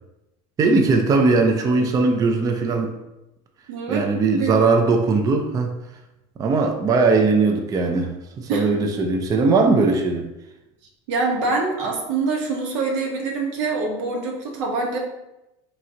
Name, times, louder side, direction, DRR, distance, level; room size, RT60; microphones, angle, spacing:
voice 1, 0.6-3.0 3.9-5.8 6.4-10.3, right 3 dB, 25° right, 4 dB, 0.4 m, -19 dB
voice 2, 3.7-4.5 8.5-8.8 11.1-15.0, right 3 dB, 85° right, 0 dB, 1.1 m, -25 dB
4.1 x 3.0 x 3.7 m, 0.94 s
supercardioid pair, 135°, 15 cm